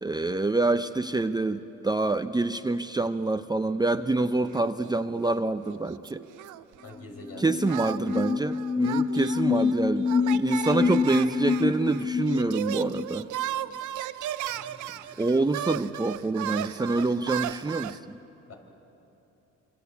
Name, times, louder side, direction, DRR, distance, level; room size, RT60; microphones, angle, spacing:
voice 1, 0.0-6.2 7.4-13.3 15.2-18.2, right 2 dB, 15° right, 9 dB, 0.6 m, -26 dB
sound 1, 4.5-5.4 5.7-7.0 7.7-18.0, right 12 dB, 75° right, 0.7 m, -35 dB
voice 2, 6.8-7.6 14.5-15.1 18.5-18.6, left 1 dB, 55° left, 2 dB, 5.6 m, -45 dB
sound 2, 7.0-7.1 7.3-13.0, left 5 dB, 15° left, 1.0 m, -27 dB
26.0 x 25.5 x 8.4 m, 3.0 s
cardioid pair, 90°, 30 cm